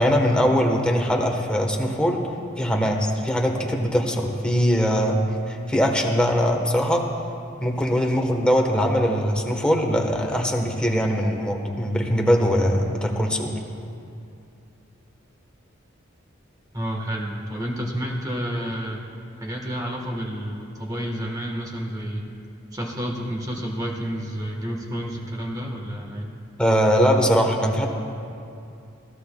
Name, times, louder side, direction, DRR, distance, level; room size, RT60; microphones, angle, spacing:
voice 1, 0.0-2.2 2.6-5.2 5.5-7.1 7.6-13.5 26.6-27.9, equal, 5° left, 1 dB, 1.1 m, -21 dB
voice 2, 16.7-19.0 19.3-22.2 22.7-26.3, equal, 20° right, -1 dB, 1.3 m, -30 dB
20.5 x 15.0 x 2.3 m, 2.6 s
head